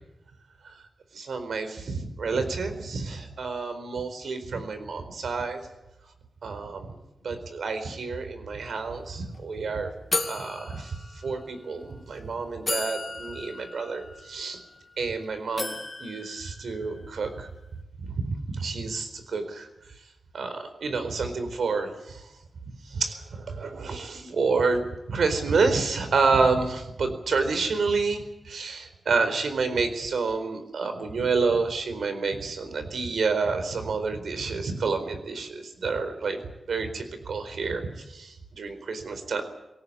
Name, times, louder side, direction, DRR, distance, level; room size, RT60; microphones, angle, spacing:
voice 1, 1.1-5.6 6.4-7.0 7.2-9.9 10.3-11.0 11.2-14.6 15.0-17.5 18.0-19.7 20.3-22.3 22.8-24.8 25.1-36.4 36.7-39.4, right 4 dB, 85° right, 9 dB, 4.4 m, -29 dB
sound 1, 8.8-8.9 9.1-9.4 10.1-11.5 12.2-12.3 12.7-15.1 15.6-17.2, left 3 dB, 30° left, 2.5 m, -35 dB
22.5 x 18.0 x 8.7 m, 0.94 s
wide cardioid pair, 100°, 0 cm